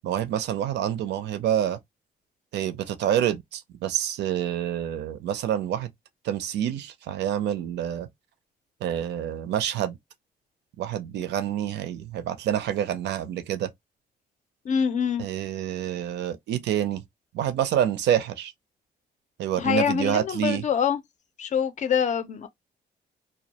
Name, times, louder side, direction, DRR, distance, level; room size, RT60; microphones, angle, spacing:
voice 1, 0.0-1.8 2.5-5.9 6.2-8.1 8.8-10.0 10.8-13.7 15.2-17.0 17.3-18.5 19.4-20.6, right 10 dB, 85° right, 0.4 m, -27 dB
voice 2, 14.6-15.2 19.6-21.0 21.4-22.5, left 7 dB, 45° left, 0.4 m, -25 dB
2.2 x 2.0 x 2.7 m
cardioid pair, 130°, 17 cm